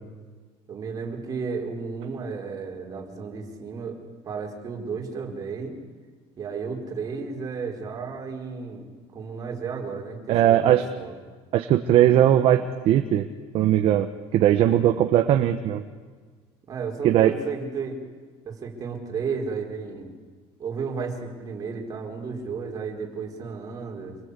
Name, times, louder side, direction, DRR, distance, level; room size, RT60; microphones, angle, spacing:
voice 1, 0.7-5.7 6.4-8.9 9.1-11.2 16.7-18.0 18.4-20.1 20.6-24.2, right 5 dB, 30° right, 1 dB, 4.6 m, -33 dB
voice 2, 10.3-10.8 11.5-13.2 13.5-15.8 17.0-17.3, right 11 dB, 45° right, 7 dB, 1.2 m, -19 dB
27.0 x 23.0 x 8.3 m, 1.5 s
cardioid pair, 155°, 13 cm